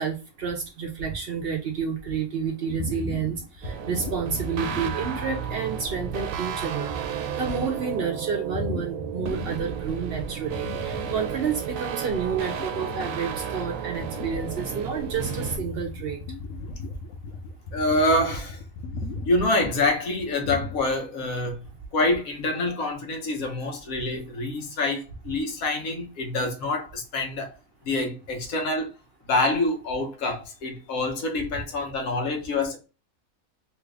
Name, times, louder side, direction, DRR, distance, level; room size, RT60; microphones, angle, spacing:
voice 1, 0.0-6.9 7.4-16.2, right 6 dB, 55° right, 0.7 m, -30 dB
sound 1, 2.7-5.7 6.2-6.3 6.7-7.1 8.5-9.9 10.2-11.9 12.2-20.8, left 2 dB, 70° left, 1.0 m, -37 dB
sound 2, 3.6-15.6, right 8 dB, 75° right, 1.0 m, -33 dB
voice 2, 17.7-18.6 19.2-21.6 21.9-27.5 27.8-28.9 29.3-32.8, left 2 dB, 90° left, 1.3 m, -26 dB
3.1 x 2.4 x 3.3 m
omnidirectional pair, 1.4 m